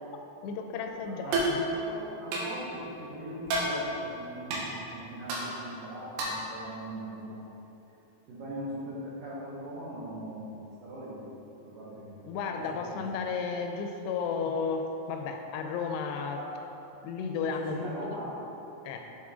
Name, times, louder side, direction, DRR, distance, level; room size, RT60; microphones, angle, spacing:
voice 1, 0.4-1.6 12.3-16.4 17.0-17.9 18.9-19.1, left 5 dB, 85° left, 4 dB, 2.7 m, -33 dB
voice 2, 1.0-4.6 4.9-7.4 8.3-11.3 11.6-13.0 16.4-16.6 17.4-18.4, right 1 dB, 70° right, -9 dB, 2.1 m, -40 dB
sound 1, 1.3-1.6 2.3-2.5 3.5-3.7 4.5-4.6 5.3-5.4 6.2-6.4, right 2 dB, 85° right, 3.1 m, -29 dB
8.5 x 4.4 x 3.6 m, 3.0 s
omnidirectional pair, 4.7 m